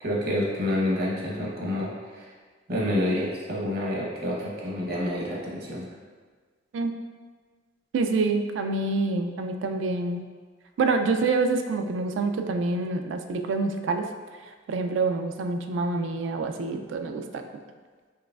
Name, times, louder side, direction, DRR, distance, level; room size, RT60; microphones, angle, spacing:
voice 1, 0.0-2.3 2.7-5.9, left 1 dB, 55° right, -4 dB, 0.9 m, -28 dB
voice 2, 7.9-10.3 10.8-14.1 14.7-17.4, right 3 dB, 75° right, 6 dB, 0.3 m, -26 dB
4.6 x 3.1 x 2.3 m, 1.5 s
head